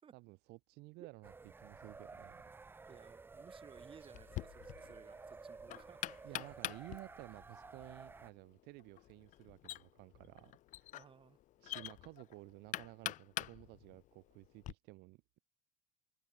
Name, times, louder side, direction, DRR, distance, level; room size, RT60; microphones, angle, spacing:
voice 1, 0.1-1.3 1.6-2.5 6.2-10.9 11.6-15.4, right 23 dB, 70° right, 1.0 m, -54 dB
sound 1, 1.2-8.3, right 4 dB, 10° right, 0.5 m, -54 dB
voice 2, 2.9-6.5 10.9-11.4, right 7 dB, 30° right, 2.3 m, -60 dB
Knock, 4.1-14.7, left 15 dB, 45° left, 0.5 m, -46 dB
cardioid pair, 120°, 18 cm